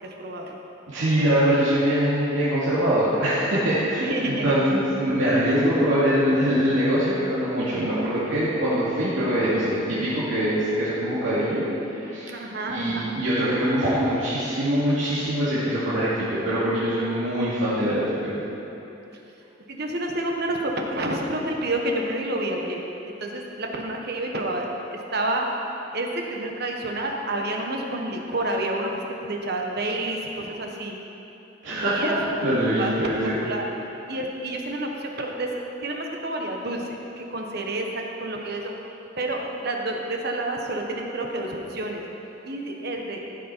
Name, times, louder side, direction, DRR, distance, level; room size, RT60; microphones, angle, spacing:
voice 1, 0.0-0.5 4.0-4.5 12.3-13.2 19.1-19.2 19.7-25.5 25.9-30.9 31.7-32.4 32.7-32.9 33.4-33.7 34.1-35.5 35.8-36.9 37.2-38.7 39.2-42.0 42.4-43.2, right 1 dB, 55° right, 1 dB, 1.2 m, -29 dB
voice 2, 0.9-11.6 12.0-12.3 12.7-18.3 31.6-32.1 32.4-33.3, equal, 80° right, -11 dB, 2.4 m, -23 dB
15.0 x 6.2 x 4.5 m, 3.0 s
head